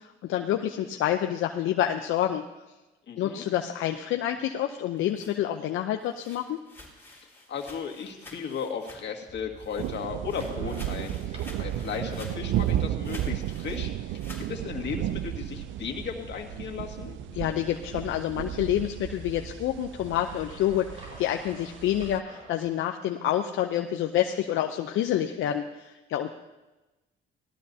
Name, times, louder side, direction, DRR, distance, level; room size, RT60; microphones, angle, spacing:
voice 1, 0.0-2.4 3.2-6.6 17.3-26.3, left 11 dB, 85° left, 4 dB, 0.7 m, -28 dB
voice 2, 3.1-3.5 7.2-17.2, left 6 dB, 65° left, 2 dB, 2.0 m, -36 dB
sound 1, 5.0-9.3 9.6-14.5, left 1 dB, 10° left, 4.1 m, -49 dB
sound 2, 9.3-22.7, right 2 dB, 35° right, 4.7 m, -48 dB
sound 3, 9.8-22.2, right 12 dB, 75° right, 0.4 m, -34 dB
19.0 x 13.0 x 2.8 m, 1.1 s
cardioid pair, 90°, 20 cm